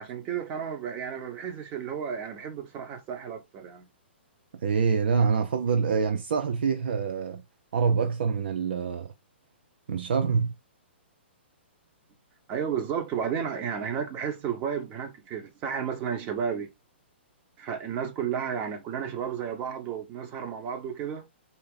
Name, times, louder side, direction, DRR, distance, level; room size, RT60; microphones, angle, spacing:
voice 1, 0.0-3.9 12.5-16.7 17.6-21.2, right 7 dB, 30° right, 1.3 m, -32 dB
voice 2, 4.6-7.4 7.7-9.1 9.9-10.5, right 5 dB, 60° right, 0.7 m, -25 dB
4.3 x 3.0 x 3.8 m
figure-of-eight pair, 120°, 6 cm